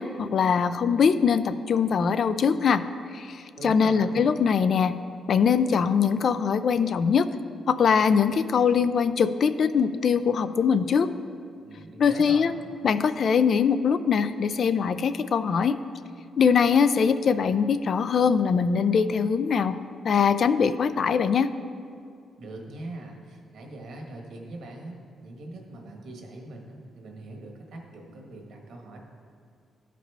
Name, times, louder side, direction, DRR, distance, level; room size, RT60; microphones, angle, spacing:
voice 1, 0.0-2.8 3.1-4.9 5.3-7.3 7.7-11.1 12.0-12.5 12.8-15.8 16.4-19.8 20.0-21.5, left 6 dB, 60° left, 12 dB, 0.4 m, -22 dB
voice 2, 3.6-4.2 11.6-12.5 22.4-29.0, right 2 dB, 75° right, 1 dB, 1.4 m, -41 dB
13.5 x 5.0 x 3.4 m, 2.3 s
cardioid pair, 100°, 0 cm